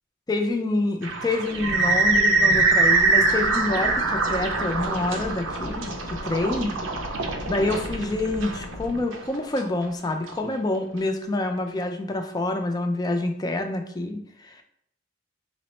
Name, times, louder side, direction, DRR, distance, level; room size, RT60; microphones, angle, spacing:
voice 1, 0.3-6.7 7.5-14.6, left 2 dB, 20° left, 4 dB, 0.3 m, -27 dB
sound 1, 1.0-10.3, right 3 dB, 85° right, 0.5 m, -23 dB
sound 2, 1.4-9.0, left 1 dB, 85° left, 0.5 m, -38 dB
3.4 x 2.0 x 4.2 m, 0.73 s
head